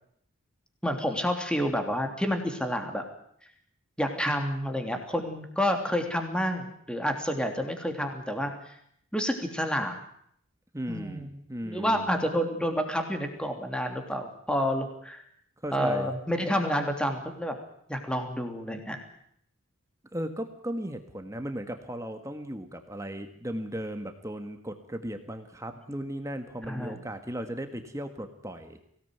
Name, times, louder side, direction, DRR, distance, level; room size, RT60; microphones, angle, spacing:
voice 1, 0.8-3.0 4.0-8.5 9.1-10.0 10.9-11.3 11.6-15.2 15.7-17.5 17.9-19.0 26.7-27.0, equal, 5° left, 5 dB, 3.1 m, -29 dB
voice 2, 10.7-12.1 15.6-16.1 20.1-28.8, right 1 dB, 15° right, 6 dB, 1.6 m, -36 dB
24.0 x 18.0 x 9.4 m, 0.70 s
head